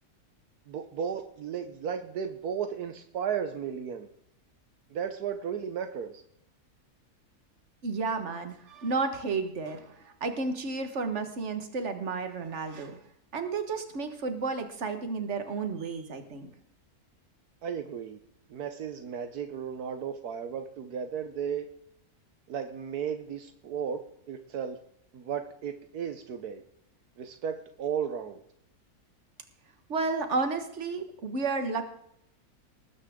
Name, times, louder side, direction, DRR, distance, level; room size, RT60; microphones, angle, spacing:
voice 1, 0.7-4.1 4.9-6.2 17.6-18.2 18.5-21.7 22.5-24.8 25.1-26.6 27.2-28.4, right 7 dB, 80° right, 7 dB, 1.4 m, -34 dB
voice 2, 7.8-13.0 13.3-16.5 29.9-31.8, right 4 dB, 50° right, 7 dB, 1.8 m, -32 dB
19.5 x 9.7 x 3.7 m, 0.73 s
omnidirectional pair, 1.6 m